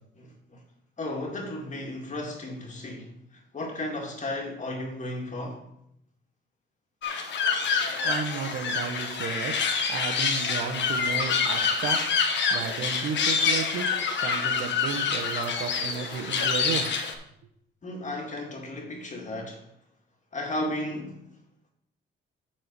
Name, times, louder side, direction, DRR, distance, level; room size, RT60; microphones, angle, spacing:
voice 1, 0.2-0.6 1.0-5.7 14.5-14.6 17.8-19.7 20.3-21.4, left 1 dB, 35° left, 2.1 m, -34 dB
sound 1, 7.0-17.1, left 5 dB, 65° left, 1.2 m, -27 dB
voice 2, 7.7-9.6 9.9-12.0 12.5-16.9, right 6 dB, 75° right, 1.2 m, -33 dB
7.7 x 4.4 x 6.7 m
cardioid pair, 90°, 20 cm